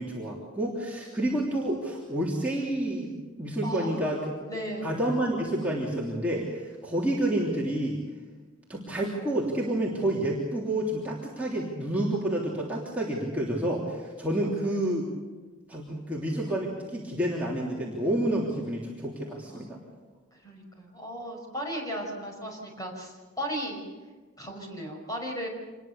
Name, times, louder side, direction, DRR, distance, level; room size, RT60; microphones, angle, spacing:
voice 1, 0.0-3.1 3.4-4.2 4.8-8.0 8.7-15.0 15.7-19.8, right 1 dB, 5° right, -5 dB, 3.3 m, -29 dB
voice 2, 3.6-4.0 4.5-4.9 14.6-14.7 19.5-19.6 20.4-23.8 24.4-25.5, equal, 15° left, 1 dB, 5.5 m, -36 dB
26.5 x 21.0 x 6.9 m, 1.4 s
head